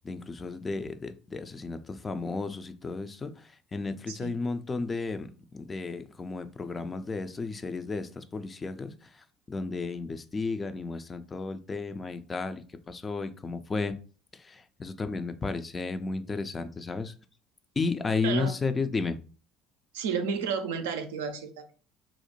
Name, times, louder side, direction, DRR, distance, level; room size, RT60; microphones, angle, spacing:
voice 1, 0.0-3.3 3.7-5.3 5.5-8.9 9.5-12.6 12.9-13.9 14.4-17.1 17.8-19.2, left 4 dB, 25° left, 10 dB, 0.3 m, -33 dB
voice 2, 18.2-18.5 19.9-21.7, right 6 dB, 75° right, 6 dB, 0.4 m, -32 dB
2.5 x 2.1 x 2.9 m, 0.38 s
hypercardioid pair, 65°, 0 cm